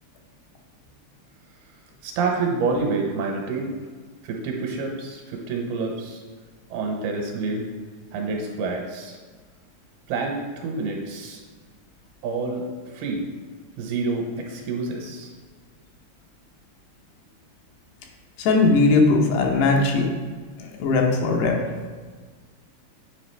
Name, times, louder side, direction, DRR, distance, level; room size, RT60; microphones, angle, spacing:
voice 1, 2.0-3.7 4.2-6.2 6.7-7.7 8.1-9.2 10.1-11.4 12.2-12.7 12.9-13.2 13.8-15.3, right 4 dB, 75° right, 1 dB, 2.7 m, -28 dB
voice 2, 18.4-20.1 20.6-21.6, left 3 dB, 80° left, 1 dB, 2.9 m, -19 dB
9.0 x 4.8 x 3.3 m, 1.5 s
omnidirectional pair, 4.7 m